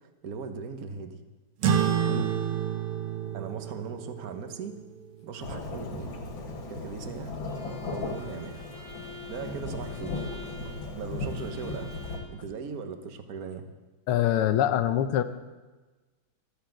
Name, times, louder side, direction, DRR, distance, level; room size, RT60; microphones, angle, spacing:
voice 1, 0.0-1.2 1.7-2.4 3.3-4.7 5.2-6.1 6.7-7.4 7.9-8.7 9.3-10.3 11.0-11.9 12.3-13.7, right 5 dB, 50° right, 7 dB, 1.4 m, -39 dB
sound 1, 1.6-6.5, right 9 dB, 80° right, 2.0 m, -30 dB
Thunderstorm / Rain, 5.4-12.2, left 2 dB, 65° left, 2.6 m, -37 dB
Bowed string instrument, 7.5-12.4, left 5 dB, ahead, 1.2 m, -47 dB
voice 2, 14.1-15.2, left 11 dB, 85° left, 10 dB, 1.7 m, -24 dB
13.0 x 10.5 x 7.8 m, 1.2 s
omnidirectional pair, 2.4 m